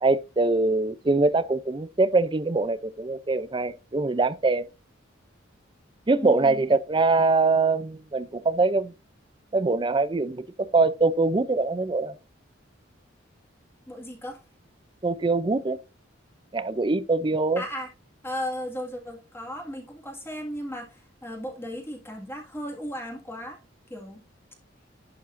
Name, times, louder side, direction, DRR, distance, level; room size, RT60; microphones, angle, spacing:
voice 1, 0.0-4.7 6.1-8.9 9.5-12.1 15.0-15.8 16.5-17.6, right 3 dB, 25° right, 0.4 m, -23 dB
voice 2, 6.2-6.6 13.9-14.4 17.6-17.9 18.2-23.6 23.9-24.2, equal, 10° left, 1.9 m, -35 dB
11.0 x 8.3 x 2.6 m
head